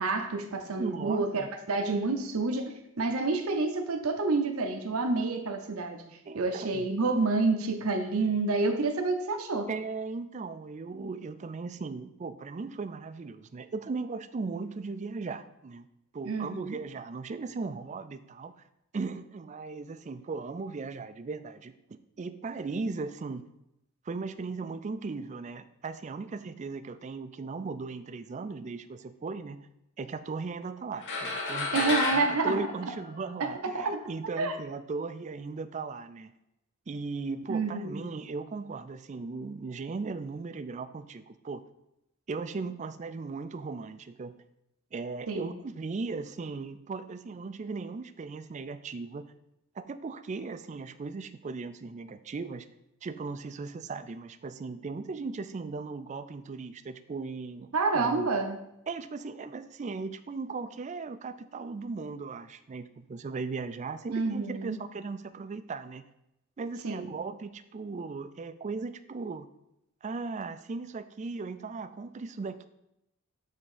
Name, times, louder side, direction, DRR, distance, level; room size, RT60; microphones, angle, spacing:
voice 1, 0.0-6.0 6.3-9.7 16.2-16.8 31.7-32.7 33.4-34.0 34.4-34.5 37.5-38.0 45.3-45.6 57.7-58.6 64.1-64.8 66.8-67.2, right 3 dB, 85° right, 5 dB, 0.8 m, -29 dB
voice 2, 0.8-1.5 6.3-6.9 9.7-15.9 16.1-18.5 18.9-21.8 22.2-23.5 24.1-29.7 30.0-36.3 36.9-41.6 42.3-44.4 44.9-49.3 49.8-52.7 53.0-58.3 58.9-66.0 66.6-69.5 70.0-72.7, right 4 dB, 35° right, 12 dB, 0.3 m, -37 dB
sound 1, 31.0-33.6, left 2 dB, 60° left, 1.2 m, -32 dB
7.6 x 3.5 x 5.0 m, 0.85 s
head